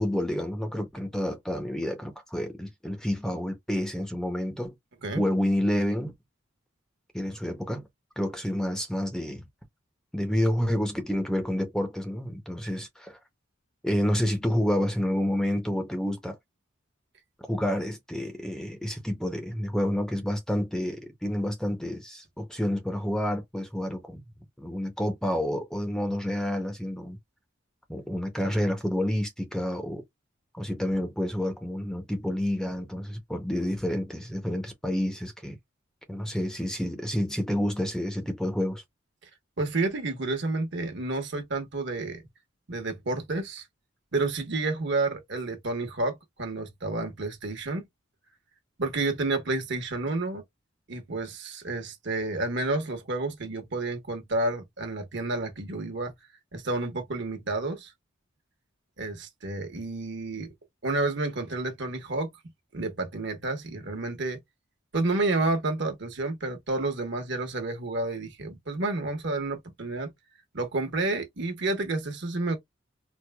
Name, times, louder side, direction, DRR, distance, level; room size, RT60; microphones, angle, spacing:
voice 1, 0.0-4.7 5.2-6.1 7.1-7.9 8.2-9.5 10.1-13.2 13.8-16.4 17.5-24.2 24.6-27.2 27.9-30.0 30.5-35.6 36.1-38.8, equal, 5° left, 0.6 m, -29 dB
voice 2, 39.6-42.2 42.7-43.6 44.1-47.9 48.8-50.4 50.9-56.1 56.5-57.9 59.0-60.5 60.8-62.3 62.7-64.4 64.9-70.1 70.5-72.6, right 2 dB, 60° right, 1.1 m, -30 dB
4.5 x 2.2 x 2.2 m
head